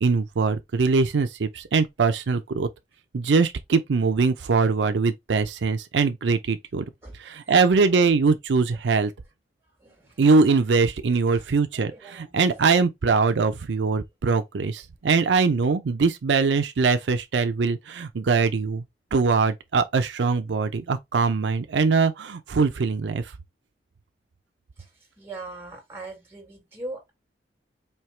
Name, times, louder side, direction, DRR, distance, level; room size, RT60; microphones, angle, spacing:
voice 1, 0.0-2.7 3.1-6.9 7.2-9.1 10.2-18.8 19.1-23.3, right 4 dB, 90° right, 0.5 m, -22 dB
voice 2, 9.8-10.2 11.3-11.4 11.7-12.9 24.8-24.9 25.2-27.1, right 2 dB, 15° right, 2.0 m, -41 dB
4.5 x 2.8 x 3.1 m
head